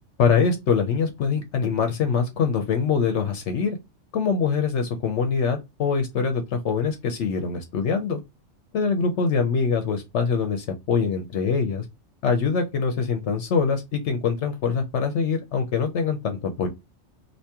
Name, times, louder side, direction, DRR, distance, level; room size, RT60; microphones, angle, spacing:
voice 1, 0.2-3.8 4.1-8.2 8.7-11.8 12.2-16.7, left 5 dB, 70° left, 0.9 m, -24 dB
2.9 x 2.8 x 3.4 m
omnidirectional pair, 1.3 m